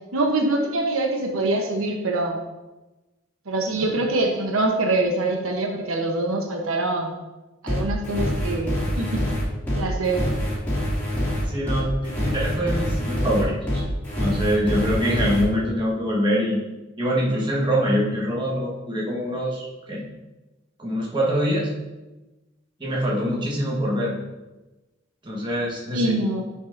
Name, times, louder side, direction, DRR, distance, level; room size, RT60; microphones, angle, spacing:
voice 1, 0.1-2.4 3.5-7.1 7.6-9.3 9.7-10.3 25.9-26.4, right 2 dB, 80° right, 2 dB, 0.8 m, -24 dB
sound 1, 7.7-15.4, equal, 10° left, 2.3 m, -25 dB
voice 2, 11.5-13.8 14.2-16.6 17.0-20.0 20.8-21.7 22.8-24.2 25.2-26.2, equal, 20° right, -4 dB, 1.3 m, -24 dB
8.8 x 5.5 x 2.5 m, 1.1 s
head